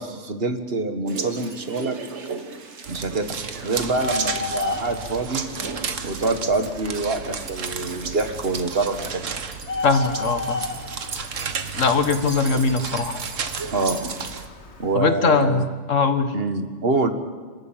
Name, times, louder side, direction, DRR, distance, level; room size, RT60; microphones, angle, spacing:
voice 1, 0.0-2.0 2.9-3.3 3.6-5.4 6.0-9.3 13.7-14.1 14.8-15.7 16.3-17.1, right 3 dB, 50° right, 8 dB, 1.8 m, -25 dB
sound 1, 1.1-14.4, right 4 dB, 65° right, 1.8 m, -37 dB
sound 2, 2.8-14.5, right 6 dB, 85° right, 1.6 m, -34 dB
Bird, 3.8-14.9, left 3 dB, 60° left, 2.1 m, -35 dB
voice 2, 9.8-10.7 11.7-13.2 14.9-16.3, left 4 dB, 85° left, 9 dB, 1.8 m, -21 dB
27.0 x 13.5 x 9.0 m, 1.5 s
omnidirectional pair, 1.3 m